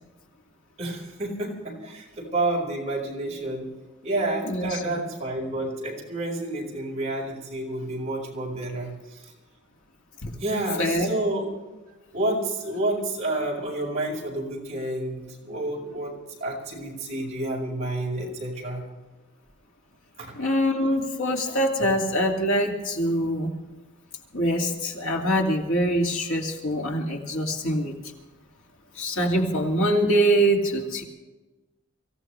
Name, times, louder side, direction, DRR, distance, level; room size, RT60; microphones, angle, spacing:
voice 1, 0.8-3.7 4.0-9.2 10.4-11.5 12.1-16.1 16.4-18.9 20.2-20.4 21.8-21.9, right 2 dB, 35° right, -3 dB, 5.3 m, -29 dB
voice 2, 4.4-4.8 10.2-10.3 10.8-11.1 20.4-23.5 24.3-27.9 29.0-31.0, equal, 90° left, 0 dB, 2.5 m, -24 dB
24.5 x 16.0 x 3.3 m, 1.2 s
head